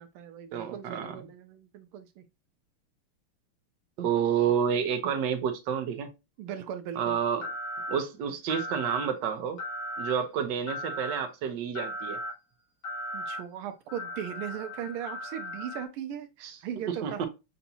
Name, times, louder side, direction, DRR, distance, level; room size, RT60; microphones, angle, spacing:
voice 1, 0.0-2.2 6.4-7.2 13.1-17.3, right 9 dB, 85° right, 1.5 m, -38 dB
voice 2, 0.5-1.1 4.0-6.1 7.0-7.5 7.9-9.6 10.0-12.2 16.4-16.5 16.9-17.3, right 8 dB, 65° right, 1.3 m, -29 dB
sound 1, 7.4-8.0 8.5-9.1 9.6-10.1 10.7-11.2 11.7-12.3 12.8-13.4 13.9-15.9, equal, 70° left, 2.3 m, -36 dB
6.8 x 2.6 x 2.7 m
omnidirectional pair, 2.3 m